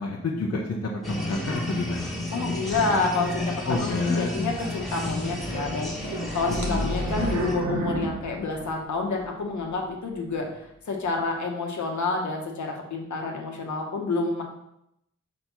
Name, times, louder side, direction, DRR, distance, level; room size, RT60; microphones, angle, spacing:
voice 1, 0.0-2.1 3.6-4.3 6.5-6.9, left 3 dB, 55° left, -1 dB, 0.9 m, -29 dB
sound 1, 1.0-7.5, left 1 dB, ahead, 1.5 m, -32 dB
voice 2, 2.3-14.4, left 3 dB, 75° left, 1 dB, 1.3 m, -29 dB
sound 2, 5.4-9.2 9.7-9.8 10.4-10.5, right 2 dB, 65° right, 1.3 m, -31 dB
5.2 x 4.6 x 5.5 m, 0.80 s
wide cardioid pair, 130°, 29 cm